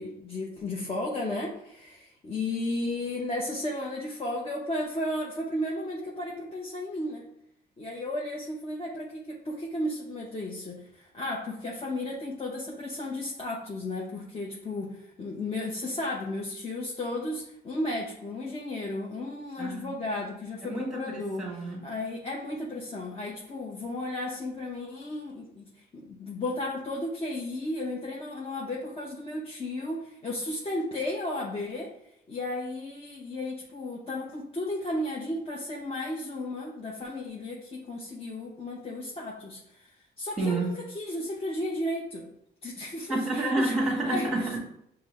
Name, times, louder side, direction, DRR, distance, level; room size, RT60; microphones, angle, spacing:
voice 1, 0.0-7.2 7.8-21.4 21.8-31.9 32.3-39.9 40.2-42.3 42.6-43.7 44.0-44.3, left 1 dB, 30° left, -3 dB, 0.8 m, -34 dB
voice 2, 19.6-20.0 20.6-21.9 40.4-40.7 43.1-44.6, right 2 dB, 5° right, -1 dB, 1.5 m, -29 dB
5.8 x 2.2 x 3.5 m, 0.76 s
cardioid pair, 90°, 20 cm